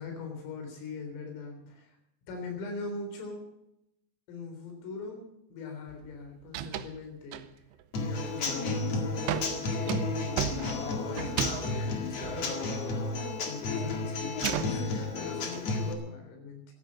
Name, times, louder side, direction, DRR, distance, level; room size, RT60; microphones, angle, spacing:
voice 1, 0.0-2.0 2.3-3.5 4.3-7.4 7.9-12.6 13.4-16.7, left 4 dB, 80° left, 4 dB, 6.4 m, -40 dB
sound 1, 5.9-6.2 6.4-7.0 7.3-7.8 8.3-8.7 9.3-13.3 13.6-15.6, right 11 dB, 85° right, 2.4 m, -36 dB
Human voice / Acoustic guitar / Drum, 7.9-15.9, left 3 dB, 55° left, 1.8 m, -32 dB
14.5 x 12.5 x 7.4 m, 0.82 s
omnidirectional pair, 5.9 m